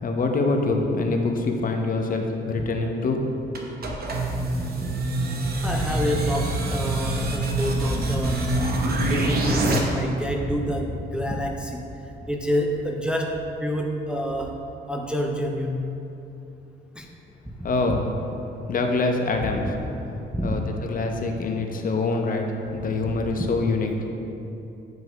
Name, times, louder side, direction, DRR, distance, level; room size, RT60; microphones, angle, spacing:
voice 1, 0.0-3.3 17.6-18.1 18.7-19.7 20.4-23.9, left 3 dB, 45° left, 3 dB, 0.7 m, -25 dB
sound 1, 3.5-9.8, right 2 dB, 50° right, 0.9 m, -25 dB
voice 2, 4.6-5.0 5.6-8.6 9.1-11.8 12.3-14.6 14.9-15.9 17.0-17.1 17.9-18.0 19.4-19.7 20.3-20.6 23.4-23.6, equal, 5° right, 1 dB, 0.5 m, -28 dB
9.3 x 5.1 x 2.2 m, 2.8 s
cardioid pair, 90°, 20 cm